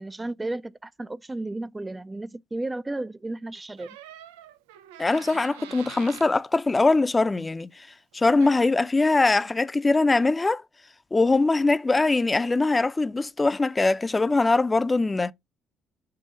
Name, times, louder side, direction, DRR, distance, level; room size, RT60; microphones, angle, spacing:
voice 1, 0.0-4.0, right 2 dB, 20° right, 0.5 m, -33 dB
Door, 3.8-6.3 8.1-8.2 8.4-8.8, right 11 dB, 90° right, 0.5 m, -45 dB
voice 2, 5.0-7.9 8.1-10.6 11.1-15.3, left 3 dB, 25° left, 0.6 m, -22 dB
7.6 x 2.7 x 5.0 m
hypercardioid pair, 55°, 0 cm